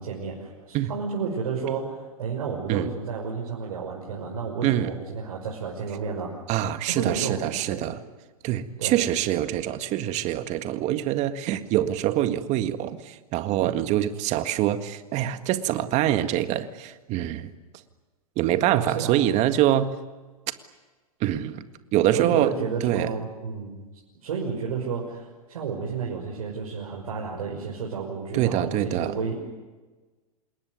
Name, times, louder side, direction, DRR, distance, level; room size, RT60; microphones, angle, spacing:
voice 1, 0.0-6.4 6.8-7.8 8.8-9.0 18.9-19.2 22.1-23.8 24.2-29.5, right 5 dB, 70° right, -2 dB, 6.0 m, -31 dB
voice 2, 6.5-8.0 8.4-17.5 18.4-19.9 21.2-21.6 21.9-22.5 22.8-23.1 28.3-29.2, right 12 dB, 35° right, 10 dB, 1.8 m, -25 dB
28.0 x 20.5 x 9.6 m, 1.3 s
hypercardioid pair, 115°, 19 cm